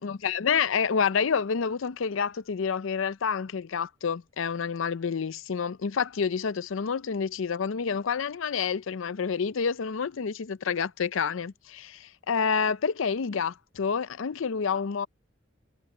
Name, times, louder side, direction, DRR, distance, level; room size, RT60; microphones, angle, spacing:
voice 1, 0.0-15.1, left 6 dB, 75° left, 0.5 m, -28 dB
head